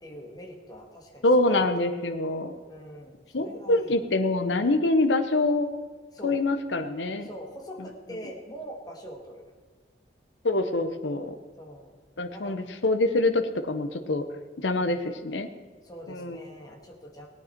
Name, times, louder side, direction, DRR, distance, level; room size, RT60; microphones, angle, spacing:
voice 1, 0.0-1.6 2.7-4.0 6.1-6.4 7.2-9.4 11.6-11.9 12.3-12.7 14.7-15.0 15.8-17.3, equal, 20° left, 0 dB, 2.1 m, -43 dB
voice 2, 1.2-2.6 3.3-5.7 6.2-7.3 7.8-7.9 10.4-11.3 12.2-14.2 14.6-15.5 16.1-16.4, left 2 dB, 85° left, 7 dB, 0.9 m, -25 dB
18.5 x 9.2 x 4.5 m, 1.4 s
head